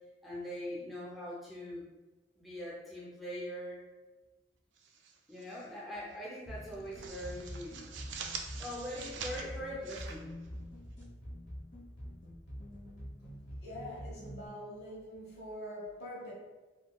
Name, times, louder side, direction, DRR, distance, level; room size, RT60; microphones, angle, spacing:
voice 1, 0.2-1.8 2.4-3.8 5.3-7.9 8.6-10.3, equal, ahead, -7 dB, 0.4 m, -42 dB
sound 1, 4.8-5.7 6.0-6.2 6.6-11.0, right 5 dB, 80° right, 0.4 m, -45 dB
sound 2, 6.5-14.5, equal, 85° left, 0.9 m, -46 dB
voice 2, 13.6-16.3, left 1 dB, 60° left, -6 dB, 1.1 m, -44 dB
3.8 x 2.1 x 2.3 m, 1.2 s
head